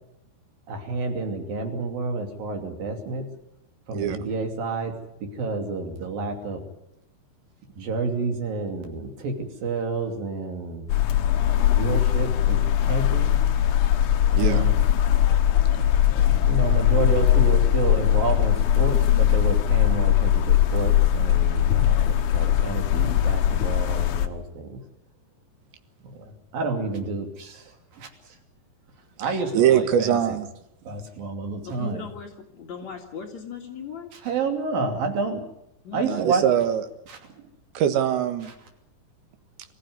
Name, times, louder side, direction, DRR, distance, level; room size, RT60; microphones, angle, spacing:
voice 1, 0.7-3.3 3.9-4.9 5.2-6.6 7.8-10.9 11.7-13.4 14.3-14.8 16.5-24.8 26.0-26.3 26.5-28.1 29.2-30.4 30.8-32.1 34.1-35.5 35.9-36.4 37.1-37.2, right 3 dB, 60° right, 4 dB, 4.3 m, -29 dB
sound 1, 10.9-24.3, left 11 dB, 65° left, 2.1 m, -20 dB
voice 2, 14.3-14.7 29.5-30.5 36.0-36.8 37.8-38.5, right 10 dB, 90° right, 9 dB, 3.8 m, -22 dB
sound 2, 14.8-23.1, left 2 dB, 20° left, 1.3 m, -42 dB
voice 3, 31.8-34.1 35.8-36.4, left 6 dB, 50° left, 2 dB, 2.8 m, -37 dB
24.0 x 15.0 x 9.5 m, 0.82 s
omnidirectional pair, 5.0 m